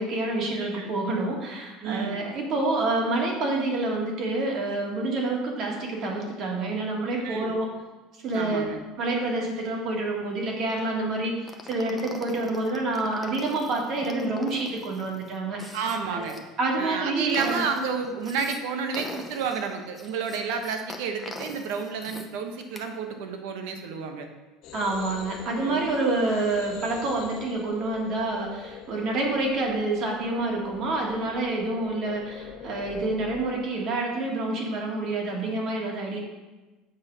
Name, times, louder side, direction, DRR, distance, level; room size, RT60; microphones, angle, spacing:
voice 1, 0.0-7.7 8.2-8.7 9.0-15.8 16.1-16.3 16.6-17.7 24.7-36.2, right 2 dB, 40° right, 0 dB, 1.6 m, -28 dB
voice 2, 0.5-0.9 1.8-2.2 7.2-7.6 8.3-8.8 15.7-16.4 16.8-24.3 25.6-25.9, right 5 dB, 70° right, 5 dB, 1.1 m, -31 dB
sound 1, 11.5-16.4 16.9-18.6 18.9-22.3 22.6-22.9, left 2 dB, 10° left, 0.7 m, -42 dB
sound 2, 24.6-33.6, left 7 dB, 55° left, 1.2 m, -43 dB
7.5 x 4.4 x 6.1 m, 1.2 s
cardioid pair, 160°, 0 cm